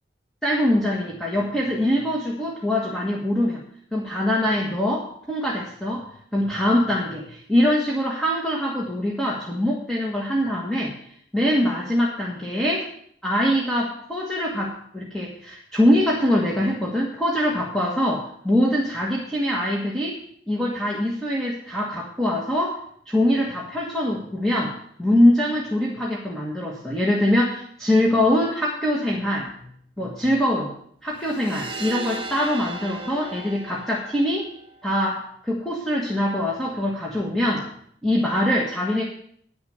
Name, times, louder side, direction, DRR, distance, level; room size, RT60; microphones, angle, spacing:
voice 1, 0.4-3.6 3.9-6.0 6.3-11.0 11.3-12.9 13.2-20.2 20.5-22.8 23.1-29.5 30.0-30.7 31.0-34.5 34.8-37.7 38.0-39.0, left 1 dB, 5° left, -4 dB, 1.5 m, -23 dB
sound 1, 31.2-34.9, right 3 dB, 30° right, 1.1 m, -36 dB
10.0 x 6.9 x 7.9 m, 0.66 s
head